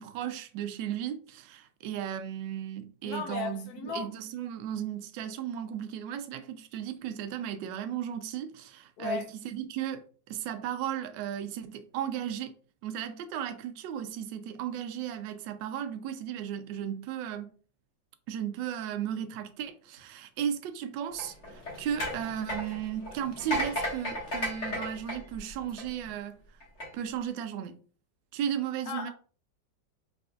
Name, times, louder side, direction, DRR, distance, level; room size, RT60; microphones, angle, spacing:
voice 1, 0.0-12.5 12.8-17.5 18.3-26.4 26.9-27.8 28.3-29.1, right 9 dB, 75° right, 1.2 m, -35 dB
voice 2, 3.0-4.1 9.0-9.3 28.9-29.1, left 5 dB, 70° left, 1.0 m, -35 dB
sound 1, 21.1-26.1 26.6-26.9, equal, 40° left, 1.7 m, -34 dB
4.2 x 3.7 x 2.3 m
omnidirectional pair, 2.0 m